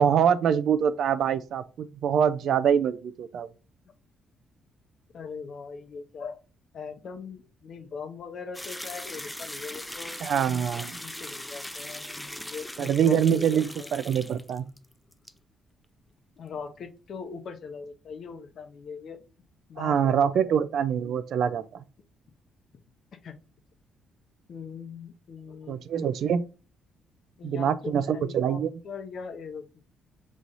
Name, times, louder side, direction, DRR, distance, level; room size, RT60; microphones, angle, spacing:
voice 1, 0.0-3.5 10.2-11.0 12.8-14.7 19.8-21.8 25.7-26.4 27.4-28.7, right 8 dB, 70° right, 0.4 m, -24 dB
voice 2, 5.1-6.4 6.7-10.2 11.0-13.9 16.4-19.2 19.7-20.6 23.1-23.4 24.5-26.1 27.4-29.8, left 5 dB, 60° left, 0.7 m, -41 dB
sound 1, 8.5-14.9 15.1-15.3, left 1 dB, 5° left, 0.3 m, -39 dB
5.5 x 3.1 x 2.6 m
cardioid pair, 90°, 0 cm